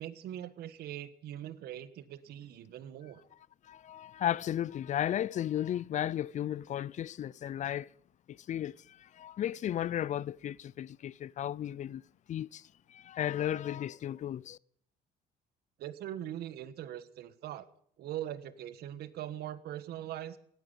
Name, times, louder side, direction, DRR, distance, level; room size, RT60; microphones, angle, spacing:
voice 1, 0.0-3.2 15.8-17.7 18.0-20.4, right 12 dB, 70° right, 1.4 m, -41 dB
voice 2, 3.6-7.9 8.3-12.0 12.3-14.6, left 11 dB, 45° left, 0.5 m, -34 dB
17.5 x 13.0 x 5.6 m
cardioid pair, 110°, 17 cm